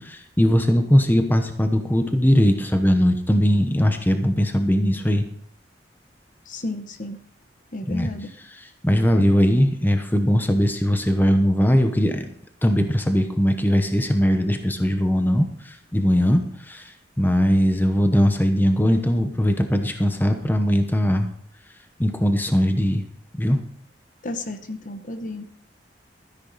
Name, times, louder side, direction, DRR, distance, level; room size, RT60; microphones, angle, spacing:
voice 1, 0.0-5.3 7.9-8.1 8.6-12.2 12.6-16.4 16.7-16.8 17.2-21.3 22.0-23.0 23.4-23.6, equal, 10° left, 6 dB, 0.9 m, -20 dB
voice 2, 6.5-7.2 7.7-8.3 24.2-25.4, left 2 dB, 45° left, 8 dB, 1.0 m, -32 dB
13.5 x 10.0 x 4.1 m, 0.64 s
head